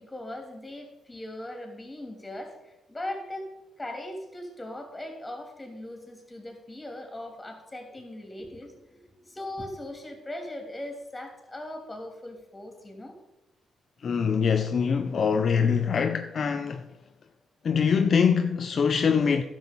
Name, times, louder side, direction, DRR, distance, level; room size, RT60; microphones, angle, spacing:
voice 1, 0.0-3.5 3.8-13.2, left 1 dB, 20° left, 3.2 m, -39 dB
voice 2, 14.0-16.8 17.6-19.4, left 6 dB, 55° left, 0.6 m, -23 dB
12.0 x 6.4 x 5.4 m
supercardioid pair, 55°, 0 cm